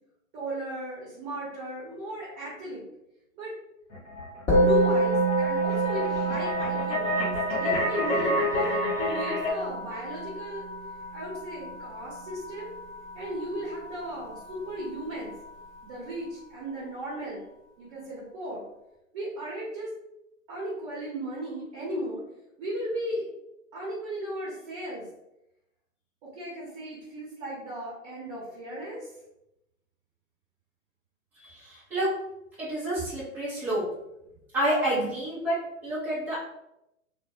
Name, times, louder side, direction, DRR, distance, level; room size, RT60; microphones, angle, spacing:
voice 1, 0.3-2.8 3.3-3.5 4.4-10.6 11.1-12.7 13.1-15.3 15.8-17.5 17.8-18.7 19.1-19.9 20.5-22.2 22.6-23.2 23.7-25.1 26.2-29.1, right 1 dB, 30° right, -7 dB, 0.8 m, -36 dB
sound 1, 3.9-9.5, left 1 dB, 60° left, 0.8 m, -29 dB
Musical instrument, 4.5-14.0, right 2 dB, 15° left, 0.8 m, -28 dB
voice 2, 31.4-32.1 32.6-33.8 34.5-36.4, right 1 dB, 5° right, -10 dB, 0.5 m, -29 dB
2.1 x 2.1 x 2.7 m, 0.85 s
hypercardioid pair, 125°, 41 cm